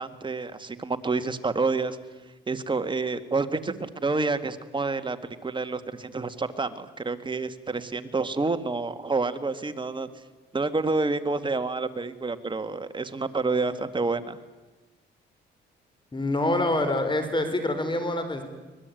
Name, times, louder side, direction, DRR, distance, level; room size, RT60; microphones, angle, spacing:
voice 1, 0.0-2.0 2.5-5.2 5.4-10.1 10.5-14.4, right 3 dB, 25° right, 9 dB, 2.0 m, -28 dB
voice 2, 16.1-18.4, left 1 dB, 25° left, 8 dB, 4.2 m, -26 dB
25.0 x 20.0 x 9.2 m, 1.2 s
cardioid pair, 90°, 20 cm